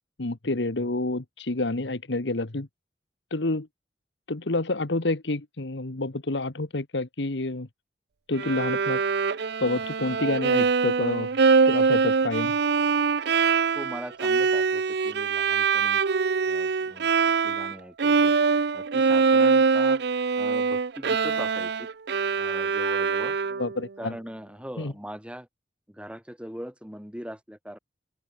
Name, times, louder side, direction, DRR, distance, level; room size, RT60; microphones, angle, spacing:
voice 1, 0.2-2.7 3.3-3.7 4.3-7.7 8.3-9.0 9.6-11.3 11.6-12.5 23.6-24.2 24.8-24.9, left 2 dB, 75° left, 1.4 m, -28 dB
Bowed string instrument, 8.4-17.7 18.0-23.8, right 5 dB, 65° right, 0.6 m, -23 dB
voice 2, 13.7-16.0 16.5-17.1 17.4-18.3 18.7-20.0 20.4-21.9 22.4-23.4 24.0-25.5 25.9-27.8, equal, 5° right, 6.3 m, -40 dB
open air
head